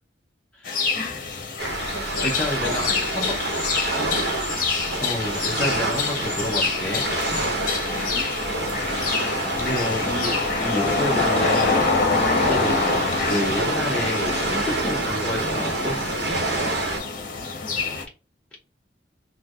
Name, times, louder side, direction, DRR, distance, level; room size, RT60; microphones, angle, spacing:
voice 1, 0.5-0.9 2.2-3.4 5.0-7.1 9.6-11.9 12.3-16.0, left 1 dB, 5° left, 0.7 m, -29 dB
sound 1, 0.6-18.0, left 4 dB, 50° left, 0.8 m, -26 dB
sound 2, 1.6-17.0, right 2 dB, 65° right, 1.0 m, -28 dB
voice 2, 1.9-2.3 2.6-3.0 7.8-8.3 17.5-17.9, left 1 dB, 25° left, 1.3 m, -38 dB
4.5 x 2.2 x 2.4 m
head